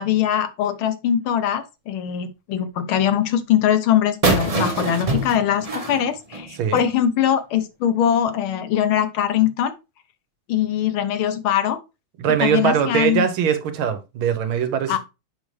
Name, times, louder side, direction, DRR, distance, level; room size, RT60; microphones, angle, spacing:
voice 1, 0.0-9.8 10.5-11.8 12.4-13.2 14.9-15.0, left 10 dB, 85° left, 1.7 m, -21 dB
sound 1, 4.2-6.9, right 2 dB, 30° right, 0.7 m, -24 dB
voice 2, 12.2-15.0, right 8 dB, 80° right, 1.8 m, -21 dB
7.2 x 5.3 x 3.2 m
omnidirectional pair, 2.2 m